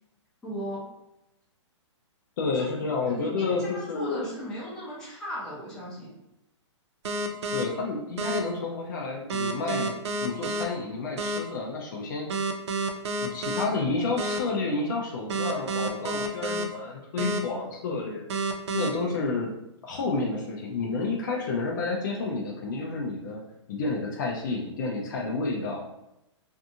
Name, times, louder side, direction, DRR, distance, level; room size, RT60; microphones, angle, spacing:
voice 1, 0.4-0.8 2.5-2.7 3.1-3.7 3.9-6.2, equal, 5° left, -10 dB, 0.7 m, -37 dB
voice 2, 2.4-4.2 7.5-12.3 13.2-18.3 18.7-19.5 19.8-23.4 23.7-25.9, left 3 dB, 40° left, -1 dB, 0.4 m, -30 dB
sound 1, 7.0-7.6 8.2-8.4 9.3-10.6 11.2-11.4 12.3-13.6 14.2-14.4 15.3-16.6 17.2-17.4 18.3-18.9, right 3 dB, 65° right, 0.4 m, -29 dB
2.6 x 2.3 x 2.6 m, 0.88 s
hypercardioid pair, 155°, 16 cm